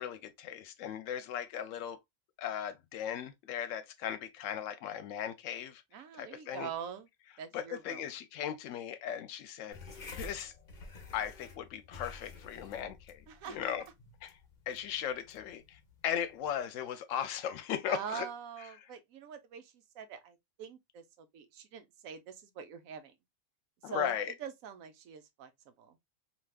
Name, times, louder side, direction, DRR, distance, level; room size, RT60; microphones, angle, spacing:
voice 1, 0.0-2.0 2.4-6.7 7.5-9.8 10.1-10.5 11.1-13.8 14.2-14.4 14.7-18.3 18.6-18.9 23.8-24.3, left 9 dB, 75° left, 0.9 m, -37 dB
voice 2, 5.9-7.1 7.4-8.0 13.3-13.7 17.9-23.1 23.8-26.0, right 8 dB, 85° right, 1.1 m, -44 dB
sound 1, 9.7-16.6, left 3 dB, 45° left, 0.8 m, -50 dB
3.3 x 2.8 x 2.3 m
omnidirectional pair, 1.4 m